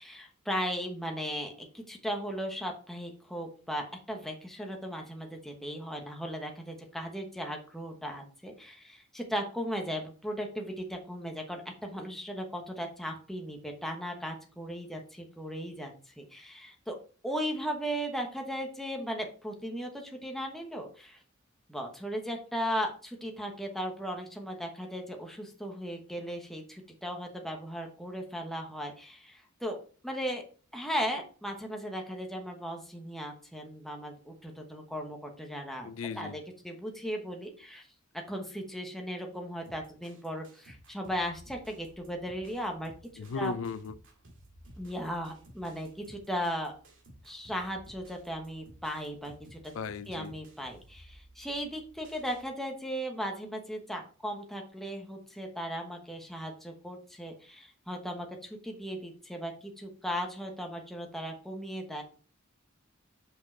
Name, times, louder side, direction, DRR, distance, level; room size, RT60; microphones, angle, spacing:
voice 1, 0.0-17.0 17.2-21.2 21.7-30.4 30.7-35.9 36.1-37.9 38.3-42.9 43.4-43.5 44.8-46.7 47.2-49.7 50.1-62.0, equal, ahead, 1.0 m, -37 dB
voice 2, 35.8-36.4 43.2-43.9 49.7-50.4, left 5 dB, 65° left, 0.5 m, -36 dB
sound 1, 39.6-52.4, right 1 dB, 65° right, 2.1 m, -56 dB
6.2 x 5.2 x 4.4 m
head